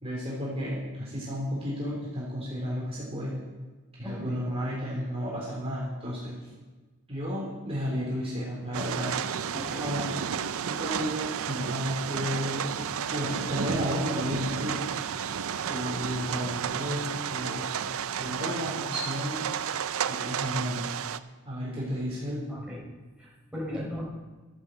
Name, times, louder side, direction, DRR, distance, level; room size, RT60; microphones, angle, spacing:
voice 1, 0.0-3.4 4.0-6.4 7.1-9.2 9.8-10.1 10.6-14.8 15.7-17.7 18.2-19.5 20.1-20.9 21.4-22.5, equal, 30° right, -6 dB, 3.4 m, -32 dB
voice 2, 4.0-4.4 7.4-7.5 9.5-9.8 22.5-22.8 23.2-24.1, left 1 dB, 5° right, -6 dB, 4.7 m, -37 dB
sound 1, 8.7-21.2, right 8 dB, 65° right, 0.5 m, -32 dB
13.0 x 8.0 x 7.8 m, 1.3 s
head